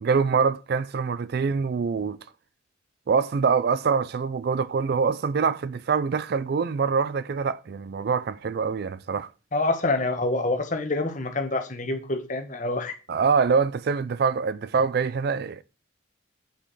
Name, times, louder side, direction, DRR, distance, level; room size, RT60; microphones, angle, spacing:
voice 1, 0.0-2.2 3.1-9.3 13.1-15.6, right 5 dB, 50° right, 0.3 m, -24 dB
voice 2, 9.5-12.9, left 2 dB, 40° left, 1.1 m, -26 dB
7.9 x 6.0 x 4.1 m
head